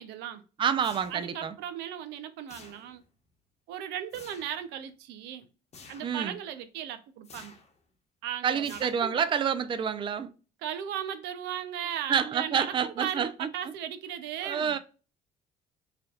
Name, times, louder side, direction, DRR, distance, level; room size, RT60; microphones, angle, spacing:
voice 1, 0.0-0.4 1.1-3.0 3.7-5.5 5.9-7.6 8.2-9.2 10.6-14.7, right 10 dB, 90° right, 0.6 m, -37 dB
voice 2, 0.6-1.5 6.0-6.3 8.4-10.3 12.1-13.5 14.4-14.8, right 7 dB, 30° right, 0.4 m, -28 dB
sound 1, 0.8-1.5 2.5-3.1 4.1-4.6 5.7-6.2 7.2-7.8 8.6-9.3, left 4 dB, 40° left, 1.0 m, -51 dB
4.9 x 2.9 x 2.4 m
cardioid pair, 110°, 17 cm